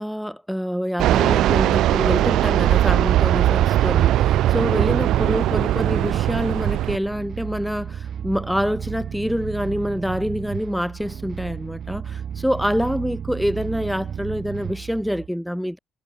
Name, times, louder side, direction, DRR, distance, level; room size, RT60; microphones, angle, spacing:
voice 1, 0.0-15.8, equal, ahead, 0.6 m, -26 dB
Fixed-wing aircraft airplane, 1.0-7.0, right 13 dB, 85° right, 0.6 m, -19 dB
sound 1, 2.8-15.3, right 8 dB, 55° right, 6.5 m, -33 dB
cardioid pair, 90°, 0 cm